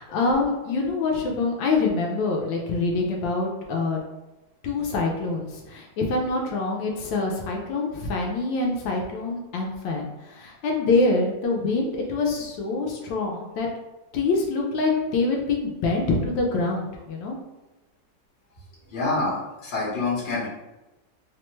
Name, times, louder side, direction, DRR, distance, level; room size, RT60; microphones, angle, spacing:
voice 1, 0.0-4.0 4.6-13.7 14.1-17.4, left 3 dB, 85° left, 0 dB, 1.3 m, -25 dB
voice 2, 18.9-20.5, left 3 dB, 40° left, -8 dB, 1.2 m, -26 dB
3.2 x 2.2 x 3.0 m, 1.0 s
omnidirectional pair, 2.0 m